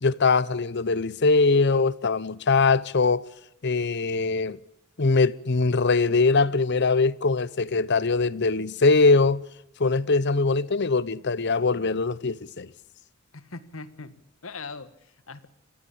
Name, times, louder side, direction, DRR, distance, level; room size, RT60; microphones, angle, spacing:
voice 1, 0.0-3.2 3.6-4.6 5.0-9.4 9.8-12.7, left 3 dB, 55° left, 0.8 m, -22 dB
voice 2, 13.3-15.5, left 4 dB, 75° left, 1.7 m, -41 dB
25.5 x 16.0 x 8.6 m
head